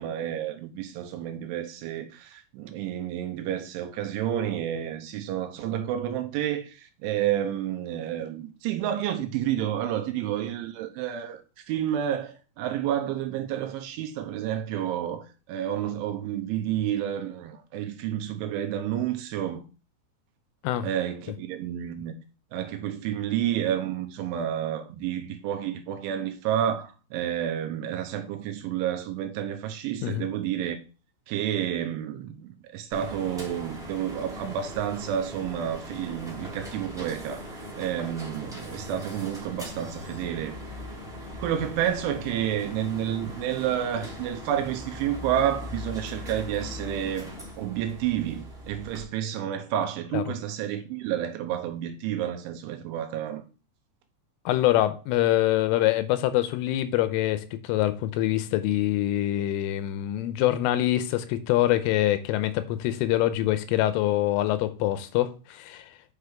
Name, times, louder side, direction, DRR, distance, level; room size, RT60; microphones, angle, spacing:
voice 1, 0.0-19.6 20.8-22.1 22.5-30.8 31.3-40.6 41.4-47.3 47.6-53.4, right 10 dB, 80° right, 3.0 m, -30 dB
sound 1, 32.9-49.0, equal, ahead, 1.9 m, -40 dB
voice 2, 54.5-65.9, left 14 dB, 85° left, 3.1 m, -25 dB
9.5 x 5.7 x 3.5 m
omnidirectional pair, 5.9 m